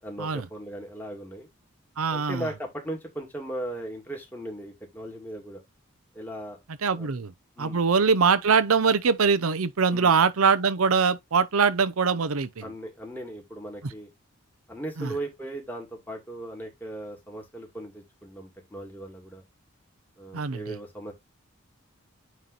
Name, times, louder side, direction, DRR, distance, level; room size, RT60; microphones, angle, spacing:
voice 1, 0.0-1.5 2.1-5.6 6.1-6.6 7.0-7.1 7.6-7.8 9.9-10.2 12.6-14.1 14.7-19.4 20.2-21.1, right 1 dB, 10° left, 2.1 m, -37 dB
voice 2, 2.0-2.5 6.8-7.3 7.6-12.6 15.0-15.1 20.3-20.6, right 5 dB, 90° right, 0.7 m, -22 dB
9.1 x 3.1 x 4.0 m
head